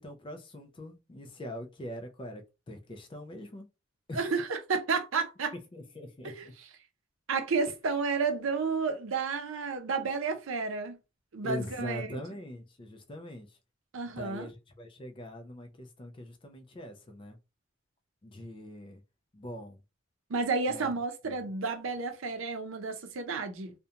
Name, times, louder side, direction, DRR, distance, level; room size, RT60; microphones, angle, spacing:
voice 1, 0.0-3.7 4.1-4.3 5.7-6.5 11.4-13.6 14.0-17.4 18.2-19.0 19.3-19.8 20.7-20.9 21.2-21.4, left 1 dB, 25° left, 0.4 m, -42 dB
voice 2, 4.1-5.5 6.4-6.5 7.3-11.0 11.3-12.2 13.9-14.5 20.3-23.7, right 4 dB, 80° right, 0.5 m, -31 dB
2.5 x 2.1 x 2.7 m
head